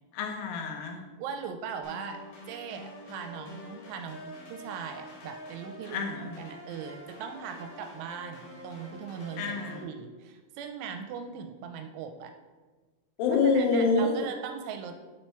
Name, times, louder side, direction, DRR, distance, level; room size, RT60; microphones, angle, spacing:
voice 1, 0.1-1.0 5.9-6.4 9.4-9.8 13.2-14.3, left 4 dB, 75° left, 2 dB, 2.6 m, -27 dB
voice 2, 1.2-12.3 13.5-15.2, right 7 dB, 85° right, 6 dB, 2.9 m, -40 dB
sound 1, 1.8-9.8, left 1 dB, 60° left, 2.5 m, -46 dB
7.4 x 4.5 x 4.4 m, 1.3 s
omnidirectional pair, 5.5 m